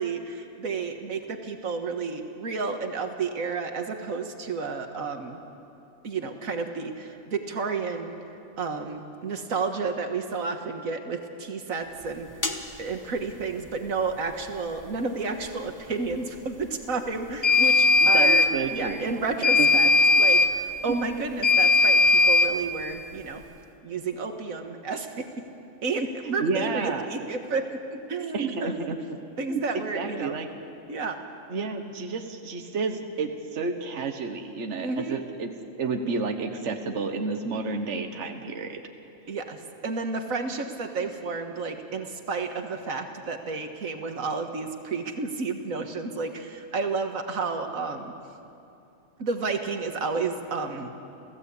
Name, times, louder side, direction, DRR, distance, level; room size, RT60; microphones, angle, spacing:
voice 1, 0.0-5.4 6.0-8.1 8.6-12.3 12.8-18.4 18.7-19.9 20.2-23.5 23.8-25.2 25.8-27.6 28.1-28.8 29.4-30.4 30.9-31.2 34.8-35.2 39.3-48.1 49.2-50.9, right 4 dB, 85° right, 5 dB, 1.9 m, -31 dB
sound 1, 12.4-12.6 17.4-18.5 19.4-20.5 21.4-22.5, left 3 dB, 15° left, 1.2 m, -18 dB
voice 2, 18.0-19.1 19.6-19.7 20.9-21.1 26.2-27.1 28.3-29.0 29.5-30.5 31.5-38.8, right 4 dB, 60° right, 5 dB, 1.6 m, -30 dB
30.0 x 15.5 x 8.4 m, 2.8 s
omnidirectional pair, 1.4 m